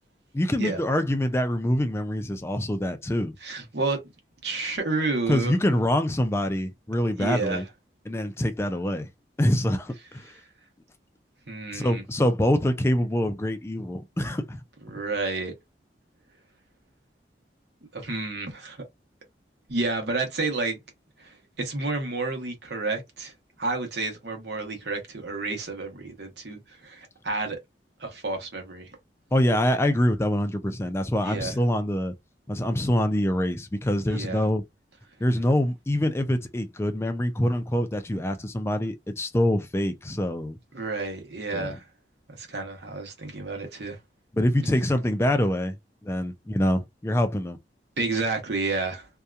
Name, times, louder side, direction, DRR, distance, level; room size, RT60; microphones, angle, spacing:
voice 1, 0.3-3.3 5.3-7.6 8.1-9.1 9.4-10.3 11.7-14.6 29.3-32.1 32.5-34.6 35.2-40.6 41.5-41.8 44.3-45.8 46.0-47.6, left 1 dB, 15° left, 0.3 m, -25 dB
voice 2, 3.4-4.0 4.4-5.5 7.2-7.6 11.5-12.0 14.9-15.5 17.9-18.8 19.7-20.8 21.2-23.3 23.6-27.6 28.0-28.9 31.2-31.5 34.1-34.4 40.7-41.8 42.3-44.0 48.0-49.1, right 3 dB, 75° right, 1.0 m, -30 dB
2.7 x 2.3 x 2.3 m
head